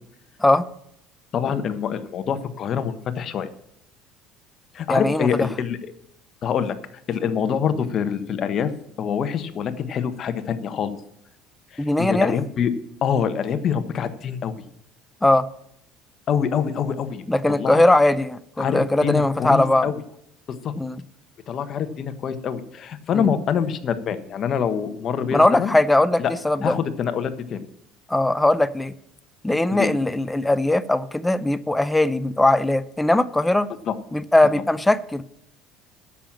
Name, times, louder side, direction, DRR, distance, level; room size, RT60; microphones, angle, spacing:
voice 1, 1.3-3.5 4.7-5.9 6.4-6.7 7.1-8.7 9.0-10.9 11.7-12.7 13.0-14.5 16.3-17.8 18.6-20.0 20.6-20.7 21.5-25.7 26.2-26.3 26.6-27.7 29.7-29.9 33.9-34.0, left 7 dB, 45° left, 10 dB, 1.2 m, -25 dB
voice 2, 4.9-5.5 11.8-12.4 15.2-15.5 17.3-19.9 20.8-21.0 23.1-23.3 25.3-26.8 28.1-28.9 29.4-33.7 34.1-35.2, left 1 dB, 10° left, 15 dB, 0.6 m, -20 dB
10.0 x 7.5 x 7.3 m, 0.73 s
cardioid pair, 115°, 0 cm